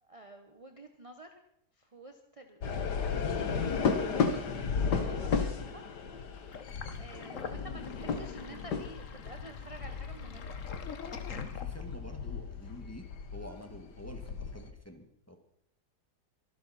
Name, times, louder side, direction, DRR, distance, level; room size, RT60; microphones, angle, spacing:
voice 1, 0.0-1.3 1.8-5.9 7.0-10.6, right 2 dB, 25° right, 5 dB, 1.1 m, -50 dB
sound 1, 2.6-14.7, left 5 dB, 85° left, 2.0 m, -34 dB
Sink (filling or washing), 6.5-12.1, left 6 dB, 55° left, 1.5 m, -45 dB
voice 2, 11.4-15.4, equal, 10° left, 5 dB, 1.7 m, -48 dB
24.0 x 12.0 x 4.3 m, 0.74 s
omnidirectional pair, 1.7 m